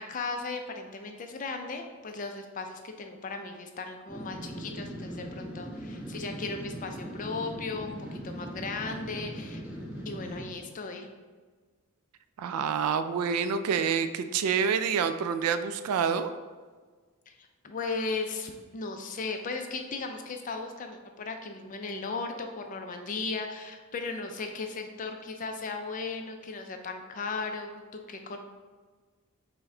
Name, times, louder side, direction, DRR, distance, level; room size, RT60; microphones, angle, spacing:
voice 1, 0.0-9.6 10.1-11.1 17.3-17.4 17.6-28.4, left 4 dB, 35° left, 5 dB, 0.4 m, -36 dB
sound 1, 4.1-10.5, equal, 5° right, 1.0 m, -40 dB
voice 2, 12.4-16.3, right 6 dB, 85° right, 14 dB, 0.3 m, -27 dB
5.7 x 2.1 x 3.7 m, 1.4 s
head